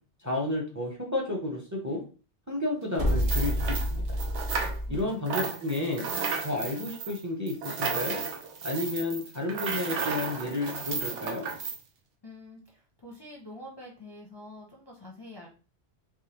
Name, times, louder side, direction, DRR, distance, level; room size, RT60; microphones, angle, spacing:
voice 1, 0.2-2.0 2.5-4.1 4.9-6.1 6.4-8.2 8.6-11.5, left 2 dB, 20° right, 0 dB, 0.6 m, -31 dB
sound 1, 3.0-5.0, equal, 45° right, 1.0 m, -28 dB
sound 2, 3.1-5.0 5.3-11.8, right 5 dB, 90° right, 1.0 m, -34 dB
voice 2, 4.8-5.3 6.1-6.3 12.2-15.5, left 2 dB, 30° left, -2 dB, 0.6 m, -46 dB
3.5 x 3.1 x 2.9 m, 0.36 s
omnidirectional pair, 1.2 m